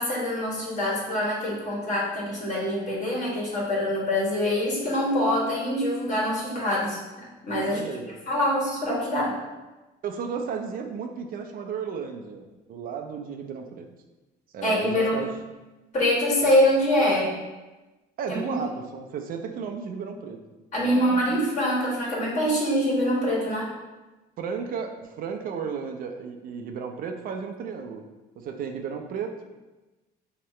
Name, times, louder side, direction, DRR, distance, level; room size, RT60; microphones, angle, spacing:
voice 1, 0.0-7.0 7.4-7.9 8.3-9.4 14.6-15.2 15.9-17.4 18.3-18.6 20.7-23.7, left 1 dB, 45° left, -4 dB, 1.5 m, -24 dB
voice 2, 7.6-8.1 10.0-13.9 14.5-15.3 18.2-20.4 20.8-21.4 24.4-28.0 28.4-29.4, right 6 dB, 60° right, 5 dB, 0.5 m, -34 dB
4.5 x 2.9 x 3.1 m, 1.1 s
cardioid pair, 110°, 17 cm